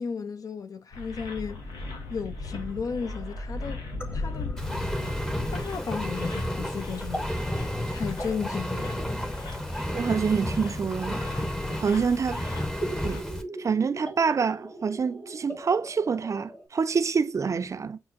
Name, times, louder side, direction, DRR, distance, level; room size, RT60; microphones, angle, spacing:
voice 1, 0.0-1.6 2.1-3.8 4.1-4.6 5.5-9.3, left 6 dB, 55° left, 0.4 m, -35 dB
sound 1, 0.9-13.2, left 2 dB, 90° left, 0.7 m, -38 dB
sound 2, 2.9-16.7, right 1 dB, 25° left, 1.4 m, -42 dB
Engine, 4.6-13.4, equal, 5° left, 0.7 m, -32 dB
voice 2, 9.9-11.2 11.8-12.4 13.0-13.2 13.6-18.0, right 5 dB, 45° right, 0.4 m, -26 dB
5.6 x 2.0 x 2.6 m
supercardioid pair, 45°, 7 cm